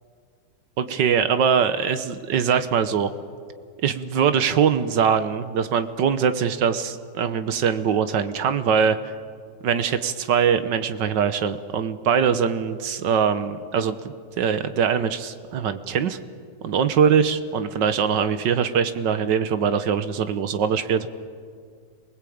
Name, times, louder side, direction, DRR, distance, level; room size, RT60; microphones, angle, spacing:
voice 1, 0.8-3.1 3.8-9.0 9.6-14.0 14.4-16.2 16.6-21.1, right 7 dB, 80° right, 11 dB, 1.7 m, -22 dB
27.0 x 20.0 x 8.7 m, 2.1 s
omnidirectional pair, 1.9 m